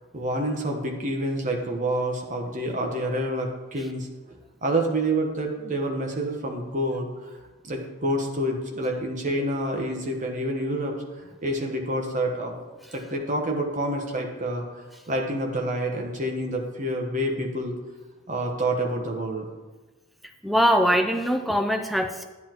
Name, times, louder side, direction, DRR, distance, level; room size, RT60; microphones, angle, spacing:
voice 1, 0.1-4.3 4.6-7.4 7.6-10.9 11.4-12.5 12.9-17.7 18.3-19.5, right 1 dB, 35° right, 2 dB, 1.1 m, -28 dB
voice 2, 20.4-22.2, equal, ahead, 5 dB, 0.4 m, -22 dB
10.0 x 9.6 x 3.0 m, 1.3 s
head